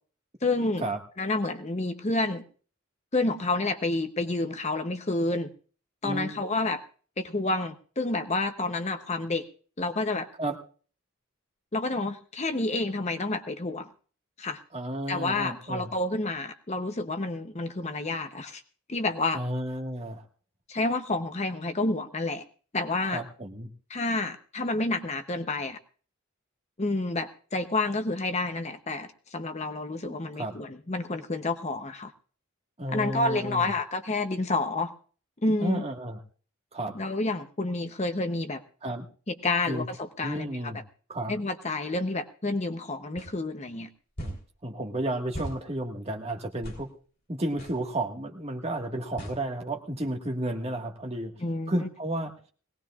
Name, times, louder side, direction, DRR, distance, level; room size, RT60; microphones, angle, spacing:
voice 1, 0.4-0.9 1.2-2.4 3.1-5.5 6.0-6.8 7.2-9.4 9.8-10.3 11.7-13.9 14.4-14.6 15.1-18.6 18.9-19.4 20.7-22.4 22.7-23.2 23.9-25.8 26.8-32.1 32.9-34.9 35.4-35.8 36.9-38.6 39.3-40.7 41.3-43.9 51.4-51.9, left 2 dB, 30° left, 8 dB, 0.8 m, -29 dB
voice 2, 14.7-15.9 19.3-20.2 23.1-23.7 30.0-30.5 32.8-33.7 35.6-36.2 36.7-36.9 38.8-39.0 39.7-39.9 40.2-40.8 41.1-41.3 44.2-44.4 44.6-46.9 47.3-51.3 51.7-52.3, right 1 dB, 30° right, 3 dB, 1.6 m, -32 dB
sound 1, 43.2-43.3 44.2-44.4 45.3-45.6 46.6-46.8 47.6-47.8 49.2-49.4, right 1 dB, 45° left, 3.6 m, -37 dB
21.0 x 18.0 x 2.4 m, 0.42 s
head